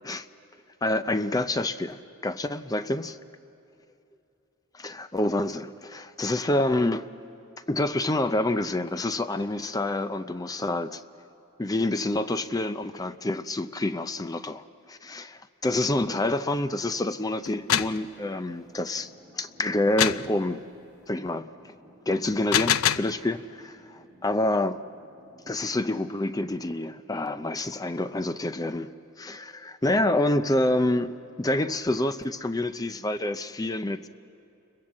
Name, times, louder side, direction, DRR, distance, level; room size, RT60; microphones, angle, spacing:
voice 1, 0.8-3.2 4.7-7.1 7.7-11.0 11.6-20.6 21.1-21.7 22.1-24.8 25.5-28.9 29.2-34.1, left 1 dB, 15° left, 0.5 m, -27 dB
sound 1, 17.5-18.0 20.0-20.3 22.3-23.1, left 10 dB, 75° left, 0.5 m, -24 dB
Thunder, 17.8-27.1, equal, ahead, 4.4 m, -56 dB
29.5 x 22.5 x 7.6 m
head